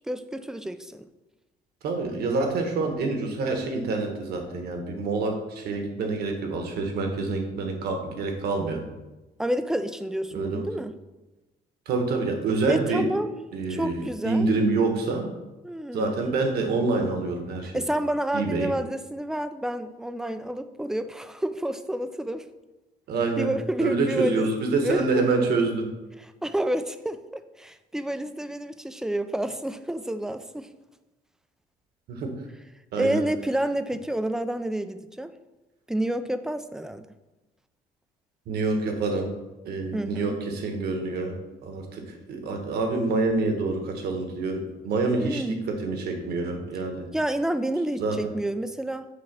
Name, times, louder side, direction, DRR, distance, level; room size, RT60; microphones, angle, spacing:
voice 1, 0.1-1.1 9.4-10.9 12.7-13.3 13.7-14.5 15.6-16.2 17.7-22.4 23.4-24.5 24.8-25.3 26.4-30.7 33.0-35.3 35.9-37.1 39.9-40.4 45.2-45.6 47.1-49.1, right 1 dB, 5° right, 10 dB, 0.4 m, -29 dB
voice 2, 1.8-8.8 10.3-10.7 11.9-13.1 13.5-15.3 15.9-17.8 18.3-18.7 23.1-23.5 23.8-25.9 32.1-32.3 32.9-33.2 38.5-39.3 39.6-41.4 41.6-42.0 42.3-47.1 48.0-48.2, right 3 dB, 70° right, 4 dB, 1.4 m, -26 dB
8.4 x 3.1 x 6.1 m, 1.1 s
cardioid pair, 110°, 17 cm